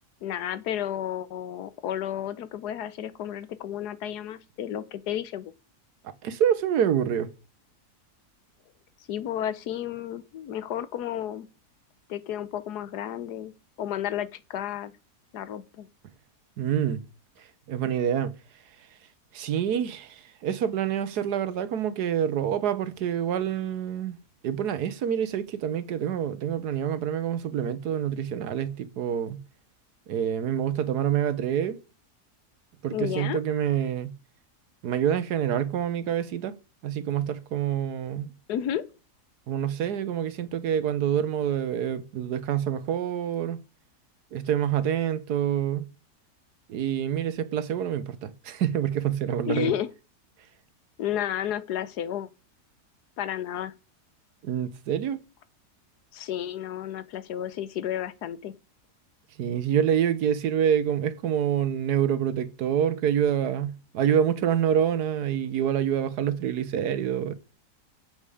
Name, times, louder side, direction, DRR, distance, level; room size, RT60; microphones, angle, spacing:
voice 1, 0.2-5.5 9.1-11.5 12.1-13.5 13.8-14.9 15.3-15.9 32.9-33.4 38.5-38.8 49.5-49.9 51.0-52.3 53.2-53.7 56.1-58.5, left 10 dB, 85° left, 1.4 m, -32 dB
voice 2, 6.2-7.3 16.6-17.0 17.7-18.3 19.3-24.2 24.4-29.4 30.1-31.8 32.8-34.1 34.8-36.5 36.8-38.3 39.5-43.6 44.3-45.9 46.7-49.7 54.4-55.2 59.4-67.3, right 9 dB, 75° right, 1.4 m, -27 dB
8.0 x 7.2 x 4.9 m
omnidirectional pair, 1.7 m